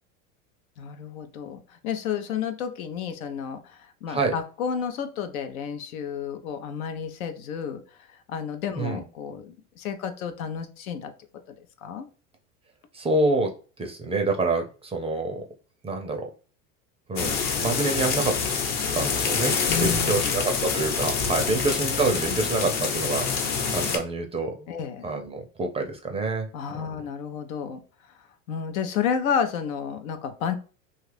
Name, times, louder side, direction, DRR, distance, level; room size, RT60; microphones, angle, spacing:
voice 1, 0.8-7.8 8.1-11.1 11.8-12.1 19.7-20.4 21.3-21.6 24.7-25.1 26.5-27.8 28.5-30.5, left 7 dB, 85° left, 8 dB, 0.6 m, -31 dB
voice 2, 8.7-9.0 12.9-13.5 13.8-15.4 15.8-16.3 17.1-18.4 18.9-24.7 25.0-26.5 26.8-26.9, right 3 dB, 15° right, 4 dB, 0.4 m, -27 dB
sound 1, 17.2-24.0, left 5 dB, 60° left, 1.0 m, -26 dB
2.8 x 2.4 x 3.3 m, 0.36 s
hypercardioid pair, 100°, 40 cm